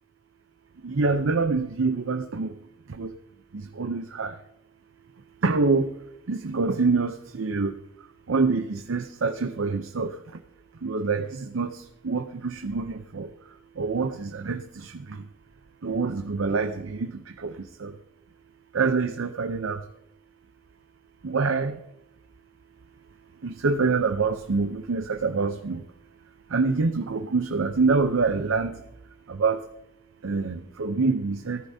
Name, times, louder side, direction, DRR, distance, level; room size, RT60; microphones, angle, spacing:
voice 1, 0.8-2.5 3.0-3.1 3.8-4.3 5.4-5.9 6.3-7.7 8.3-10.1 10.8-11.3 11.5-11.7 12.0-13.3 13.8-14.6 15.8-17.1 17.4-17.5 17.8-17.9 18.7-19.8 21.2-21.7 23.4-25.8 26.5-28.7 29.4-29.6 30.2-31.6, right 4 dB, 85° right, 8 dB, 0.7 m, -25 dB
15.0 x 13.5 x 2.7 m, 0.80 s
head